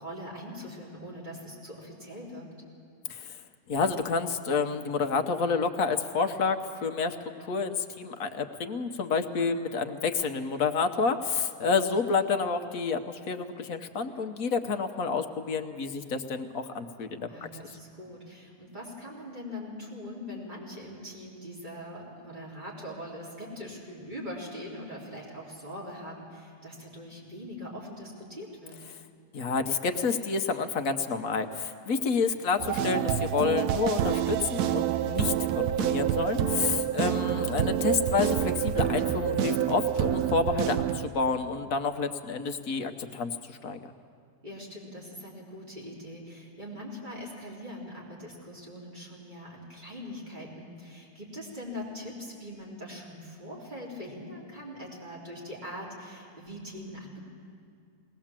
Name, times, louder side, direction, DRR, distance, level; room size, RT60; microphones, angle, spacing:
voice 1, 0.0-2.6 17.3-28.8 37.1-37.5 44.4-57.2, left 1 dB, 30° right, -5 dB, 4.0 m, -42 dB
voice 2, 3.7-17.5 29.3-43.8, left 5 dB, 65° left, 7 dB, 1.3 m, -29 dB
sound 1, 32.6-41.1, right 10 dB, 80° right, 1.2 m, -27 dB
20.5 x 19.0 x 7.4 m, 2.3 s
omnidirectional pair, 1.7 m